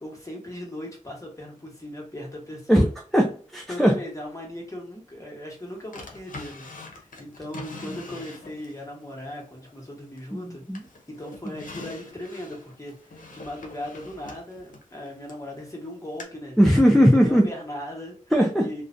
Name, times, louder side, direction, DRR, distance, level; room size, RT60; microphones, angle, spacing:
voice 1, 0.0-2.9 3.7-6.7 7.0-10.6 11.1-16.6 16.9-18.2 18.6-18.8, left 1 dB, 25° left, -1 dB, 1.0 m, -38 dB
voice 2, 3.1-4.0 10.3-10.8 16.6-17.5 18.3-18.7, equal, ahead, 0 dB, 0.4 m, -19 dB
Drawer open or close, 5.9-8.8 9.3-10.4 10.7-15.5 16.2-16.3, left 3 dB, 80° left, 0.6 m, -43 dB
2.4 x 2.1 x 2.5 m, 0.43 s
wide cardioid pair, 50°, 14 cm